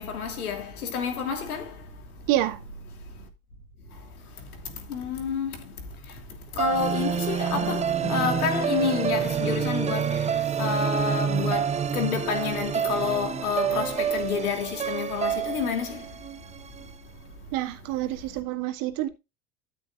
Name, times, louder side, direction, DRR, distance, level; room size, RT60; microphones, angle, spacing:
voice 1, 0.0-1.8 4.4-5.7 6.1-6.2 6.5-16.1, left 6 dB, 70° left, 3.0 m, -29 dB
voice 2, 2.3-2.6 17.5-19.1, right 14 dB, 45° right, 2.0 m, -27 dB
sound 1, 6.6-16.9, right 8 dB, 15° right, 0.7 m, -28 dB
13.0 x 6.5 x 2.5 m
figure-of-eight pair, 85°, 46 cm